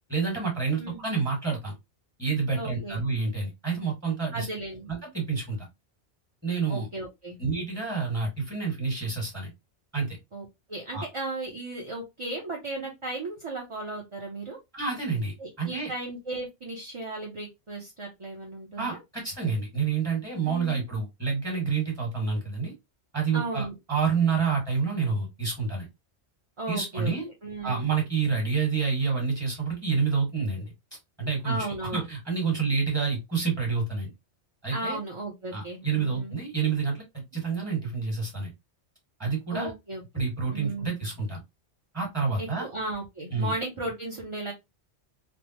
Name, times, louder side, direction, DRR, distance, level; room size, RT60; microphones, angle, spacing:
voice 1, 0.1-1.7 2.2-4.5 4.9-5.7 6.4-6.9 7.4-9.5 9.9-10.2 10.9-11.0 14.7-15.9 18.8-22.7 23.1-25.9 26.7-27.3 27.6-30.6 31.2-31.7 31.9-34.1 34.6-35.0 35.5-37.0 37.3-38.5 39.2-39.7 40.1-41.4 41.9-42.7 43.3-43.5, right 5 dB, 15° right, -2 dB, 1.7 m, -28 dB
voice 2, 2.6-3.0 4.3-4.9 6.7-7.4 10.3-14.6 15.4-19.0 20.4-20.8 23.3-23.7 26.6-27.1 27.4-27.9 31.4-32.1 34.7-36.3 39.5-40.0 40.5-40.9 42.4-44.5, right 2 dB, 35° right, 0 dB, 0.6 m, -35 dB
3.3 x 2.0 x 2.9 m, 0.21 s
omnidirectional pair, 1.2 m